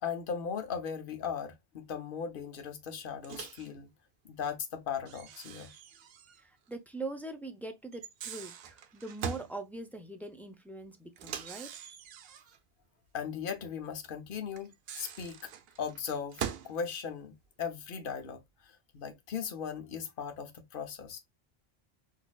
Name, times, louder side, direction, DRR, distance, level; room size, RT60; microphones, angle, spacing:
voice 1, 0.0-3.9 4.2-5.7 13.1-15.5 15.8-18.4 18.9-21.2, left 7 dB, 60° left, 0.9 m, -38 dB
Microwave oven, 3.2-3.7 5.1-6.4 6.7-6.8 7.9-9.5 11.2-12.6 14.6-16.8, right 8 dB, 75° right, 0.8 m, -42 dB
voice 2, 6.4-11.7, right 2 dB, ahead, 0.5 m, -42 dB
4.1 x 2.7 x 2.3 m
omnidirectional pair, 1.0 m